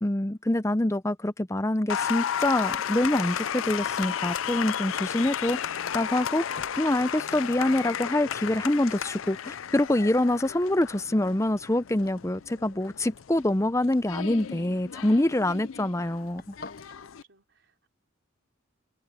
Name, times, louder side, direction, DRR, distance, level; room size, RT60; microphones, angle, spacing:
voice 1, 0.0-6.4 6.8-16.5, left 1 dB, 15° left, 0.6 m, -25 dB
Applause, 1.9-17.2, left 8 dB, 75° left, 0.5 m, -34 dB
Domestic sounds home sounds, 3.9-17.1, left 3 dB, 45° left, 7.4 m, -56 dB
voice 2, 17.0-17.9, right 4 dB, 60° right, 4.9 m, -65 dB
head